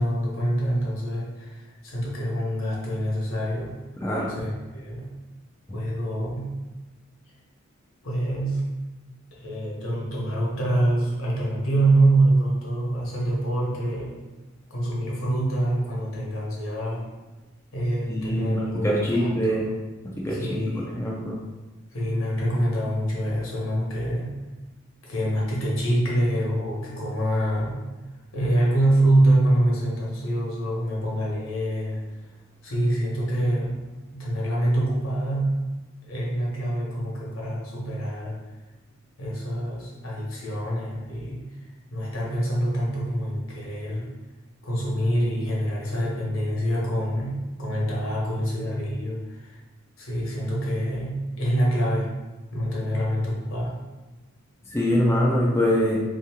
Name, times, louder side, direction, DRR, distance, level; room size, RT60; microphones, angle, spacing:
voice 1, 0.0-3.8 4.3-5.1 5.7-6.6 8.0-8.7 9.3-14.2 14.7-17.1 17.7-19.6 20.3-20.9 21.9-24.4 25.0-27.8 28.3-32.0 32.6-33.8 34.1-35.6 36.1-38.4 39.2-41.4 41.9-44.1 44.6-49.6 50.0-52.1 52.5-53.7, right 1 dB, 65° left, -4 dB, 1.2 m, -25 dB
voice 2, 4.0-4.3 18.1-19.6 20.2-21.3 54.7-56.0, equal, 10° left, -5 dB, 0.4 m, -24 dB
3.5 x 2.9 x 3.5 m, 1.2 s
head